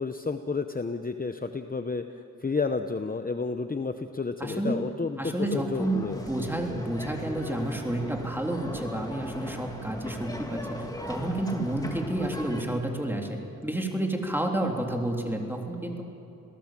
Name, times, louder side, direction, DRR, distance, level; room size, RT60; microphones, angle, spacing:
voice 1, 0.0-2.0 2.4-6.2, left 4 dB, 25° left, 7 dB, 0.8 m, -31 dB
voice 2, 4.4-4.8 5.2-13.4 13.6-16.0, right 1 dB, 5° right, 1 dB, 3.3 m, -30 dB
sound 1, 5.7-12.6, left 1 dB, 10° left, 2.8 m, -39 dB
27.5 x 17.5 x 7.5 m, 2.9 s
wide cardioid pair, 90°, 33 cm